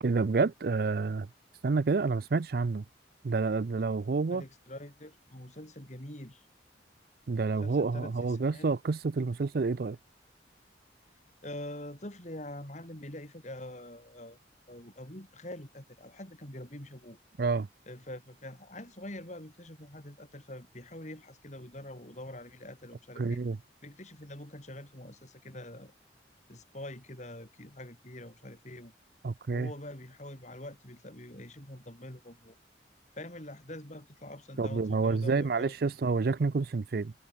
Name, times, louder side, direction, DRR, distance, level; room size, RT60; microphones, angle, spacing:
voice 1, 0.0-1.3 1.6-2.8 3.2-4.4 7.3-10.0 17.4-17.7 23.2-23.6 29.2-29.7 34.6-37.1, right 4 dB, 55° right, 0.5 m, -28 dB
voice 2, 4.3-6.5 7.6-8.7 11.4-14.4 14.7-17.2 17.9-23.4 23.8-25.9 26.5-28.9 29.5-32.6 33.1-35.7, left 1 dB, 40° left, 4.6 m, -45 dB
head